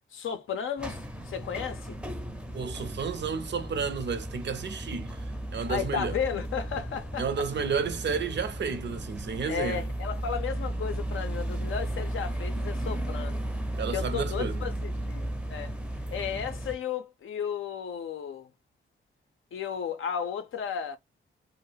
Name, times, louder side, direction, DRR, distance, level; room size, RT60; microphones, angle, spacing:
voice 1, 0.1-2.0 5.7-7.5 9.5-13.4 13.9-15.7 16.1-18.5 19.5-21.0, left 7 dB, 75° left, 0.5 m, -34 dB
sound 1, 0.8-16.8, right 1 dB, 5° right, 0.5 m, -35 dB
voice 2, 2.5-5.2 5.5-6.1 7.2-9.8 13.8-14.6, right 5 dB, 60° right, 0.5 m, -31 dB
2.3 x 2.0 x 3.0 m
cardioid pair, 65°, 21 cm